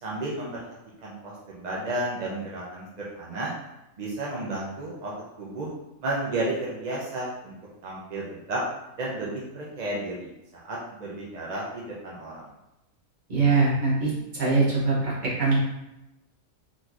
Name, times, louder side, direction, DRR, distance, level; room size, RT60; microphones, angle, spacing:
voice 1, 0.0-0.6 1.0-3.5 4.0-5.1 5.4-5.7 6.0-7.5 7.8-8.6 9.0-12.5, right 2 dB, 55° right, -5 dB, 0.5 m, -32 dB
voice 2, 13.3-14.1 14.4-15.1 15.4-15.6, right 3 dB, 35° right, -8 dB, 1.2 m, -22 dB
3.8 x 2.8 x 2.4 m, 0.93 s
omnidirectional pair, 1.5 m